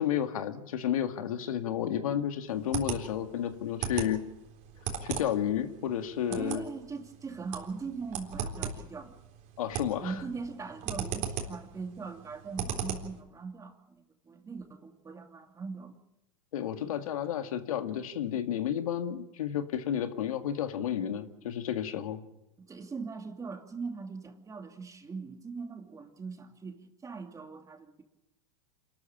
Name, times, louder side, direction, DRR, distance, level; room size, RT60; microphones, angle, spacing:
voice 1, 0.0-4.2 5.0-6.6 9.6-10.1 16.5-22.2, left 10 dB, 85° left, 8 dB, 2.0 m, -31 dB
sound 1, 2.5-13.2, right 7 dB, 50° right, 3.8 m, -38 dB
voice 2, 6.3-9.1 10.0-16.0 22.6-28.0, right 4 dB, 20° right, 5 dB, 2.6 m, -41 dB
27.0 x 13.5 x 8.9 m, 0.94 s
hypercardioid pair, 115°, 18 cm